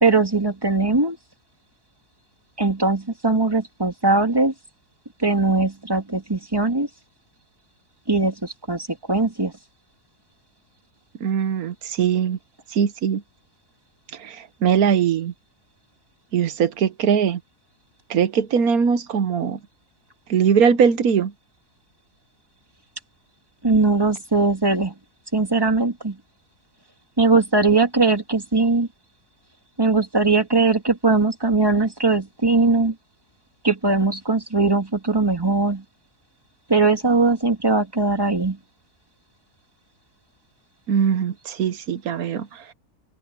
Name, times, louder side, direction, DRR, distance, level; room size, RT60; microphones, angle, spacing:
voice 1, 0.0-1.2 2.6-4.5 5.2-6.9 8.1-9.5 23.6-24.9 25.3-26.2 27.2-28.9 29.8-32.9 33.6-35.8 36.7-38.6, right 3 dB, 15° right, 2.2 m, -20 dB
voice 2, 11.2-12.4 12.7-13.2 14.2-15.3 16.3-17.4 18.1-19.6 20.3-21.3 40.9-42.7, right 7 dB, 75° right, 1.5 m, -21 dB
open air
omnidirectional pair, 1.6 m